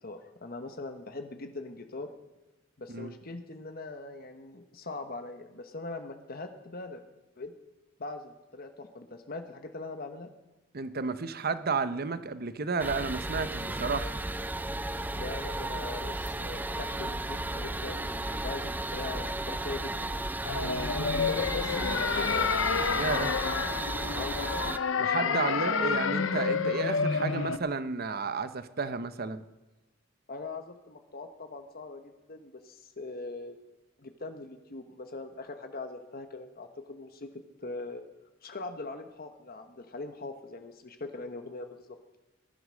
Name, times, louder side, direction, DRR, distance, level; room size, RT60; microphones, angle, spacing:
voice 1, 0.0-2.1 2.8-7.0 7.4-7.5 8.0-10.3 15.1-20.3 20.6-22.5 24.1-24.6 25.2-25.9 30.3-32.0 32.3-33.6 34.0-37.3 37.6-38.0 38.4-41.8, left 3 dB, 50° left, 6 dB, 1.1 m, -41 dB
voice 2, 10.7-14.2 21.0-21.1 22.9-23.3 25.0-29.4, right 4 dB, 50° right, 12 dB, 0.9 m, -32 dB
sound 1, 12.8-24.8, right 2 dB, 10° right, 0.5 m, -34 dB
sound 2, 20.5-27.6, left 5 dB, 70° left, 0.8 m, -29 dB
18.5 x 11.5 x 6.4 m, 1.1 s
head